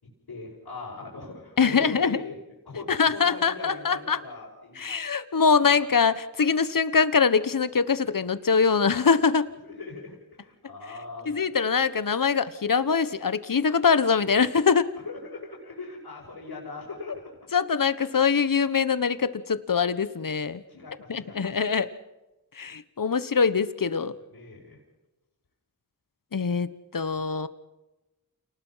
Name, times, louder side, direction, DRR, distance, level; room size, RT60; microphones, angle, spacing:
voice 1, 0.0-2.4 2.7-4.9 9.6-11.4 15.0-17.5 20.7-21.5 24.3-24.8, left 3 dB, 80° left, -5 dB, 5.5 m, -40 dB
voice 2, 1.6-2.2 2.9-4.2 4.8-9.5 11.3-14.9 17.5-20.6 21.1-21.9 22.6-24.1 26.3-27.5, left 5 dB, 60° left, 14 dB, 1.3 m, -23 dB
28.5 x 19.5 x 5.8 m, 1.0 s
cardioid pair, 45°, 38 cm